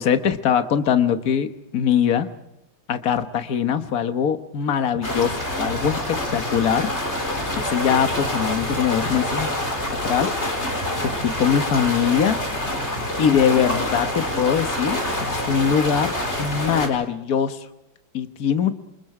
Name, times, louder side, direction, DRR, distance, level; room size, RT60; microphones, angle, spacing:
voice 1, 0.0-2.3 2.9-6.9 7.6-9.5 10.0-10.3 11.0-12.4 13.2-16.1 16.4-17.6 18.1-18.7, left 8 dB, 50° left, 8 dB, 1.7 m, -22 dB
sound 1, 5.0-16.9, left 1 dB, 35° left, 4.5 m, -26 dB
28.0 x 25.5 x 5.0 m, 0.88 s
omnidirectional pair, 2.1 m